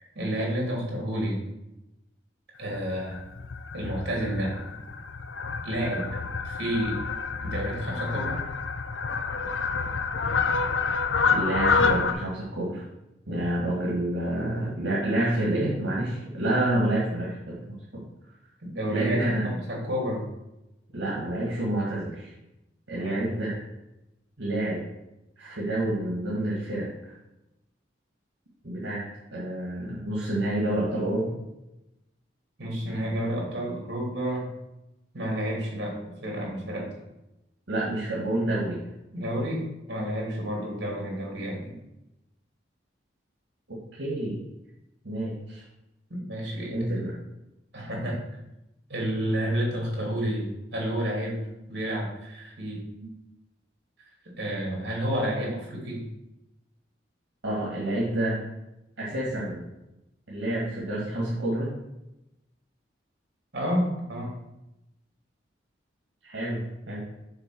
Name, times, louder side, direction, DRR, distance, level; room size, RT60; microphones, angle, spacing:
voice 1, 0.1-1.4 2.6-3.2 3.7-4.6 5.6-6.1 6.4-7.0 7.4-8.4 18.6-20.2 23.0-23.2 32.6-34.5 35.1-36.9 39.1-39.6 39.9-41.7 46.3-46.7 47.7-48.2 48.9-51.4 51.7-52.8 54.4-56.1 63.5-64.3, equal, 60° right, -2 dB, 2.8 m, -30 dB
Fowl, 2.7-12.1, left 5 dB, 85° left, 0.6 m, -28 dB
voice 2, 11.3-12.8 13.3-17.8 18.9-19.5 20.9-22.3 22.9-23.6 24.4-24.8 25.4-26.9 28.6-29.0 29.3-31.3 37.7-38.8 43.9-44.4 45.0-45.6 46.7-47.1 53.0-53.1 57.4-58.4 59.0-59.6 60.3-61.7 66.2-67.0, right 1 dB, 80° right, -6 dB, 1.8 m, -28 dB
6.8 x 4.0 x 6.1 m, 0.92 s
head